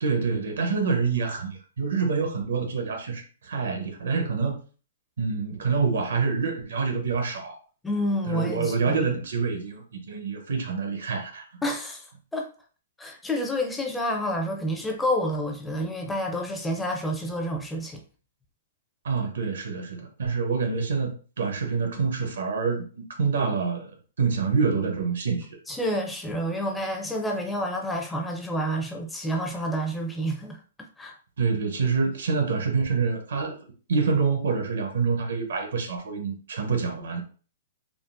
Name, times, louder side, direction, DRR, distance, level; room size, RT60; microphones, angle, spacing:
voice 1, 0.0-4.6 5.2-7.6 8.3-11.4 19.0-23.9 24.2-25.5 31.4-33.5 33.9-37.2, right 5 dB, 80° right, 0.9 m, -26 dB
voice 2, 7.8-9.0 11.6-12.1 12.3-12.5 13.0-18.0 25.7-31.2, equal, 5° left, 0.4 m, -29 dB
3.6 x 2.0 x 2.5 m
hypercardioid pair, 140°, 0 cm